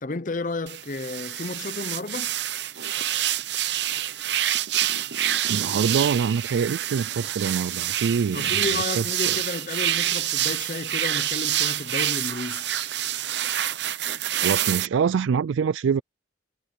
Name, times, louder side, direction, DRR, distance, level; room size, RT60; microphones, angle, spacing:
voice 1, 0.0-2.3 8.3-12.7, left 3 dB, 40° left, 0.7 m, -32 dB
sound 1, 0.7-14.9, right 12 dB, 60° right, 0.8 m, -27 dB
voice 2, 5.5-9.4 14.3-16.0, right 6 dB, 80° right, 0.3 m, -25 dB
head